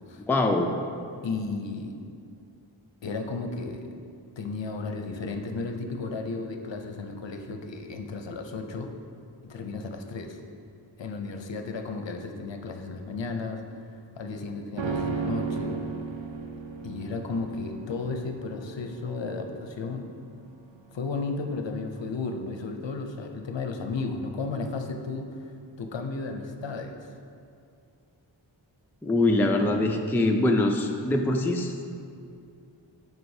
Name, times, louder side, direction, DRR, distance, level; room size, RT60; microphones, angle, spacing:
voice 1, 0.3-0.7 29.0-31.7, left 2 dB, 5° left, 3 dB, 0.3 m, -23 dB
voice 2, 1.2-1.9 3.0-3.9 4.4-8.9 9.4-10.4 11.0-13.6 14.2-15.8 16.8-20.1 20.9-25.3 25.8-27.1, left 3 dB, 70° left, 5 dB, 0.6 m, -34 dB
sound 1, 14.8-24.2 24.5-24.6, right 5 dB, 75° right, 0.6 m, -36 dB
7.7 x 5.3 x 2.7 m, 2.4 s
wide cardioid pair, 50°, 46 cm